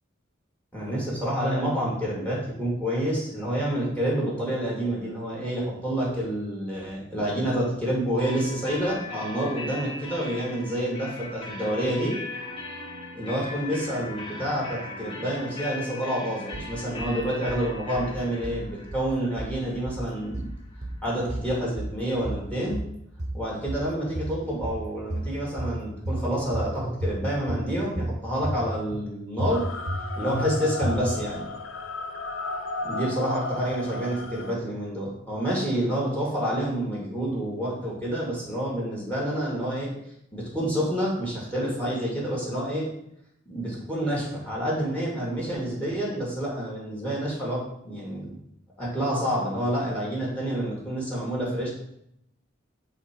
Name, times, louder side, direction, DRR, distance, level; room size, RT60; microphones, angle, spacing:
voice 1, 0.7-12.2 13.1-20.5 21.0-22.8 23.3-29.6 30.2-31.4 32.8-39.9 40.3-42.9 43.5-48.3 48.8-51.7, equal, 5° left, -4 dB, 2.0 m, -28 dB
sound 1, 8.2-21.8, left 2 dB, 30° left, 1.5 m, -39 dB
sound 2, 16.5-17.1 17.5-18.1 18.4-19.1 19.4-20.1 20.3-21.0 21.3-22.0 22.2-22.9 23.2-23.9 24.1-24.8 25.1-25.8 26.1-26.7 27.0-27.7 28.0-28.6 28.9-29.0 29.4-30.0 30.3-30.5 30.8-31.3, right 1 dB, 40° right, 0.8 m, -32 dB
sound 3, 29.5-34.5, left 2 dB, 80° left, 0.5 m, -34 dB
8.0 x 3.4 x 4.4 m, 0.77 s
head